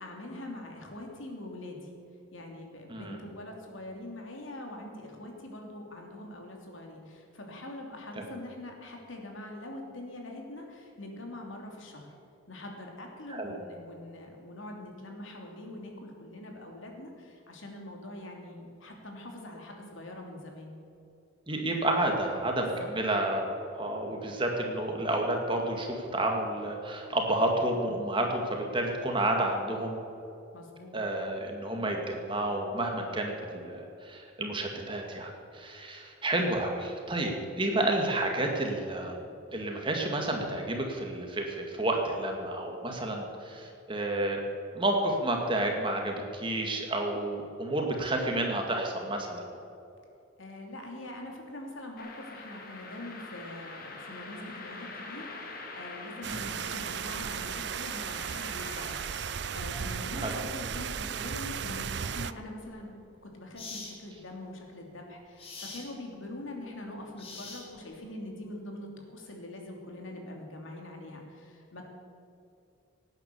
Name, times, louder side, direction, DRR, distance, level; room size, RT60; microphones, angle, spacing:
voice 1, 0.0-1.9 2.3-12.1 12.5-20.7 22.6-22.9 30.5-31.0 50.4-62.9 63.2-71.9, left 1 dB, 70° left, 1 dB, 2.9 m, -43 dB
voice 2, 21.5-30.0 30.9-39.2 39.5-44.4 44.7-49.4 56.3-56.5 60.1-60.4, right 1 dB, 25° right, 2 dB, 2.0 m, -30 dB
sound 1, 52.0-60.1, left 3 dB, 45° left, 2.0 m, -45 dB
sound 2, 56.2-62.3, right 7 dB, 55° right, 0.5 m, -35 dB
sound 3, 62.7-62.8 63.6-64.0 65.4-65.9 67.2-67.9, left 3 dB, 30° left, 2.5 m, -43 dB
18.0 x 9.6 x 7.0 m, 2.7 s
head